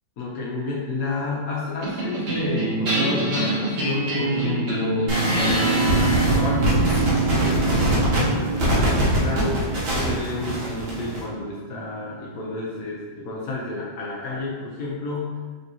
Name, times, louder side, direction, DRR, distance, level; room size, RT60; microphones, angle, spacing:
voice 1, 0.2-9.7 9.9-15.4, left 2 dB, 70° left, -5 dB, 0.9 m, -31 dB
sound 1, 1.8-12.4, right 3 dB, 55° right, 1.9 m, -26 dB
sound 2, 5.1-11.2, equal, 75° right, 1.8 m, -23 dB
4.1 x 3.3 x 2.7 m, 1.4 s
omnidirectional pair, 2.2 m